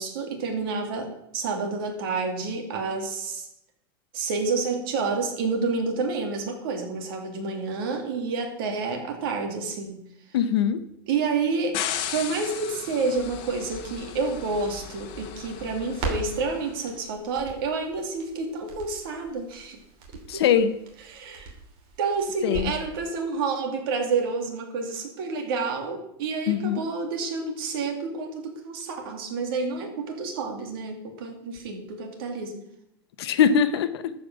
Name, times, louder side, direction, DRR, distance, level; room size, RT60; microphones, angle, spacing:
voice 1, 0.0-3.5 4.1-10.0 11.1-11.8 12.1-19.8 20.3-20.6 21.1-21.5 22.0-32.6, right 4 dB, 65° right, 3 dB, 2.7 m, -29 dB
voice 2, 10.3-10.8 20.3-20.7 22.4-22.7 26.5-26.8 33.2-34.1, left 8 dB, 85° left, 11 dB, 1.1 m, -22 dB
sound 1, 11.7-16.9, left 10 dB, 40° left, 1.1 m, -36 dB
Crackle, 13.1-22.9 23.2-23.3, right 3 dB, 40° right, 2.9 m, -40 dB
13.5 x 5.2 x 6.2 m, 0.80 s
supercardioid pair, 155°, 13 cm